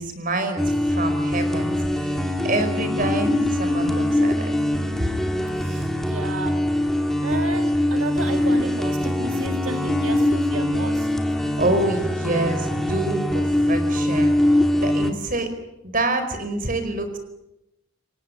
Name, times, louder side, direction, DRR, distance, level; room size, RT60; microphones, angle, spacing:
voice 1, 0.0-4.6 11.4-15.5 15.8-17.2, right 2 dB, 45° right, 8 dB, 4.7 m, -27 dB
sound 1, 0.6-15.1, left 1 dB, ahead, 2.5 m, -22 dB
voice 2, 5.6-6.6 7.2-11.1, right 3 dB, 75° right, 5 dB, 1.9 m, -33 dB
29.5 x 18.0 x 9.9 m, 0.93 s
head